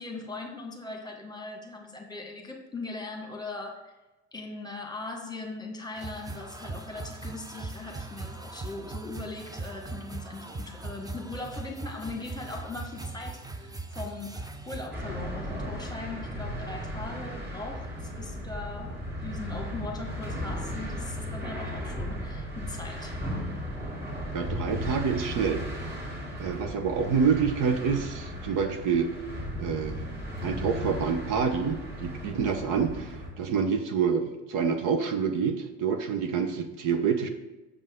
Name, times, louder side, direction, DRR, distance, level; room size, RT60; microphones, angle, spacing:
voice 1, 0.0-3.9 4.3-23.1, left 3 dB, 10° left, 2 dB, 1.3 m, -40 dB
sound 1, 5.9-14.9, right 3 dB, 10° right, 0.6 m, -40 dB
sound 2, 14.9-33.3, equal, 30° right, 2.1 m, -36 dB
voice 2, 24.3-25.6 26.4-29.1 29.6-30.0 30.4-37.3, right 6 dB, 65° right, 6 dB, 0.9 m, -27 dB
6.6 x 5.4 x 3.6 m, 1.1 s
supercardioid pair, 90°, 33 cm